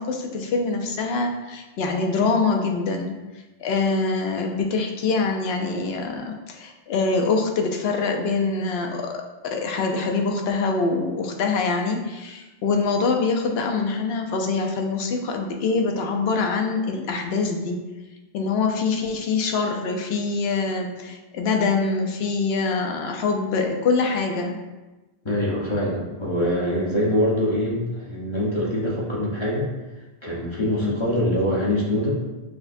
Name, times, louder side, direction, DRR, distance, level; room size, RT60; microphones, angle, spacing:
voice 1, 0.0-3.2 3.6-17.8 18.3-24.6 30.8-31.0, left 4 dB, 80° left, 3 dB, 0.8 m, -24 dB
voice 2, 25.2-29.7 30.2-32.2, left 1 dB, 30° left, -5 dB, 0.8 m, -24 dB
6.0 x 2.1 x 2.5 m, 1.1 s
omnidirectional pair, 1.0 m